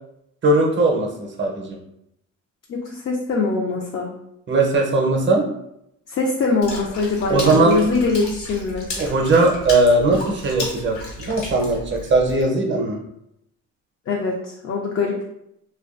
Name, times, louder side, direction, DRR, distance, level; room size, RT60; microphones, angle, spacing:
voice 1, 0.4-1.8 4.5-5.4 7.3-7.8 9.0-13.0, right 2 dB, 40° right, 1 dB, 0.6 m, -19 dB
voice 2, 2.7-4.1 6.1-8.9 14.1-15.2, left 3 dB, 50° left, -1 dB, 0.4 m, -23 dB
Water / Splash splatter, 6.6-12.4, left 2 dB, 75° left, 0.9 m, -34 dB
2.4 x 2.2 x 2.4 m, 0.78 s
cardioid pair, 90°, 30 cm